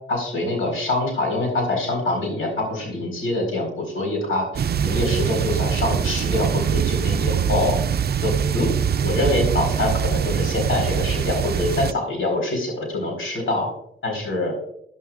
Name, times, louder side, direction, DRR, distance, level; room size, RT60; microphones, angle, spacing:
voice 1, 0.1-4.5 4.8-7.8 8.2-8.7 9.0-13.7 14.0-14.5, left 2 dB, 90° left, 1 dB, 4.4 m, -25 dB
sound 1, 4.6-11.9, right 8 dB, 50° right, 0.4 m, -23 dB
13.0 x 10.5 x 2.5 m, 0.71 s
cardioid pair, 60°, 21 cm